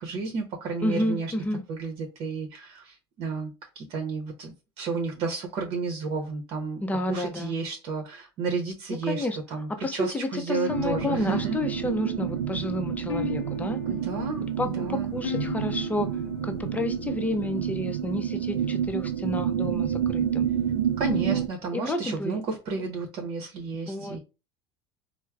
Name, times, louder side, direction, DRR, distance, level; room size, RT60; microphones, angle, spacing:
voice 1, 0.0-1.3 1.7-3.5 3.7-6.8 7.1-9.3 9.5-11.6 13.9-15.1 21.0-24.2, right 4 dB, 55° right, 0.9 m, -32 dB
voice 2, 0.8-1.6 6.8-7.5 9.1-9.4 9.8-13.8 14.6-16.1 16.4-20.5 21.2-21.4 21.7-22.4 22.8-22.9 23.9-24.2, left 1 dB, 10° left, 0.6 m, -30 dB
sound 1, 10.5-17.6, left 9 dB, 85° left, 0.5 m, -38 dB
sound 2, 10.7-21.5, right 9 dB, 80° right, 0.4 m, -29 dB
4.3 x 2.1 x 2.3 m
hypercardioid pair, 75°, 13 cm